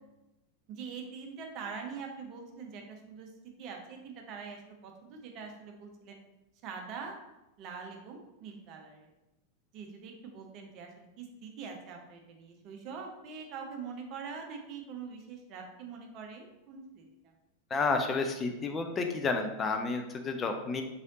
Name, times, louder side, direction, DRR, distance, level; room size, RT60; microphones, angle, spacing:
voice 1, 0.7-3.3 3.6-6.2 6.6-7.1 7.6-9.1 9.7-17.3, right 5 dB, 40° right, 3 dB, 0.7 m, -44 dB
voice 2, 17.7-20.8, left 4 dB, 25° left, 5 dB, 0.4 m, -31 dB
3.8 x 3.2 x 2.7 m, 0.96 s
figure-of-eight pair, 90°, 0 cm